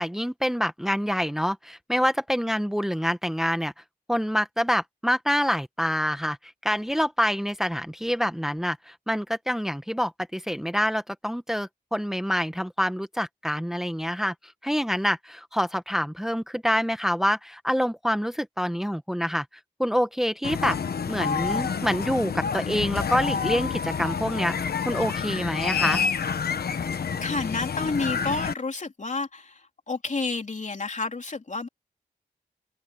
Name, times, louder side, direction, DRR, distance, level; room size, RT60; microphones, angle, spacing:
voice 1, 0.0-3.7 4.1-14.3 14.6-19.4 19.8-20.8 21.1-24.5 24.8-26.0, equal, 5° right, 1.3 m, -26 dB
sound 1, 20.4-28.5, left 6 dB, 80° left, 1.2 m, -28 dB
voice 2, 27.2-31.7, left 3 dB, 50° left, 3.5 m, -30 dB
cardioid pair, 45°, 16 cm